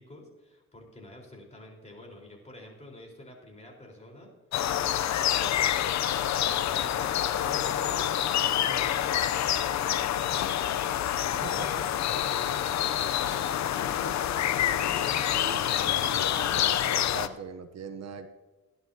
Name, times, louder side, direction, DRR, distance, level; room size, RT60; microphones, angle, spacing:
voice 1, 0.0-4.3 4.8-10.5 11.2-16.0, left 1 dB, 20° left, -1 dB, 4.3 m, -47 dB
sound 1, 4.5-17.3, left 11 dB, 65° left, 0.7 m, -27 dB
voice 2, 15.3-18.3, right 7 dB, 60° right, 9 dB, 0.9 m, -42 dB
17.0 x 11.0 x 2.8 m, 1.2 s
cardioid pair, 90°, 30 cm